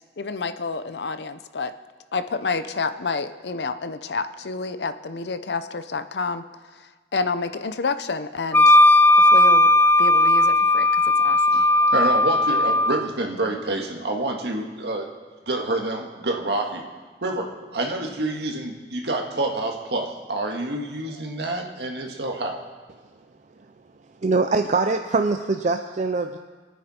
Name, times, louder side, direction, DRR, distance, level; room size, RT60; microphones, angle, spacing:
voice 1, 0.2-1.7 2.1-6.4 7.1-8.8 9.2-9.7 10.0-10.9 11.2-11.6, left 4 dB, 65° left, 11 dB, 0.7 m, -29 dB
Wind instrument woodwind instrument, 8.5-13.0, left 1 dB, 15° left, 0.3 m, -16 dB
voice 2, 11.5-15.1 15.5-16.9 17.2-22.6, right 2 dB, 65° right, 2 dB, 1.8 m, -28 dB
voice 3, 24.2-26.4, right 3 dB, 45° right, 6 dB, 0.5 m, -23 dB
24.5 x 9.4 x 4.4 m, 1.4 s
head